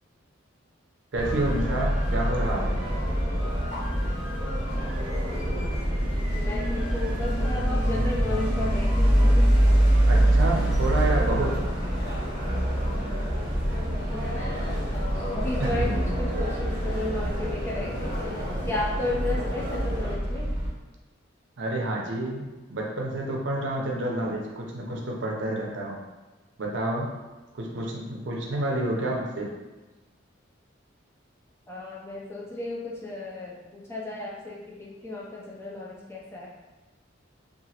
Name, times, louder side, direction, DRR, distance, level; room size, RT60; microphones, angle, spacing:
sound 1, 1.1-20.7, right 1 dB, 25° right, 0.9 m, -25 dB
voice 1, 1.1-2.8 10.0-11.6 15.8-15.9 21.6-26.0 26.6-27.1 27.5-29.5, right 1 dB, 60° right, -1 dB, 0.5 m, -29 dB
sound 2, 1.2-10.1, left 1 dB, 75° left, 0.9 m, -44 dB
sound 3, 1.2-20.1, equal, 55° left, 1.2 m, -36 dB
voice 2, 6.3-9.2 14.1-20.6 31.7-36.5, left 2 dB, 10° left, -4 dB, 0.3 m, -34 dB
2.9 x 2.4 x 2.8 m, 1.2 s
head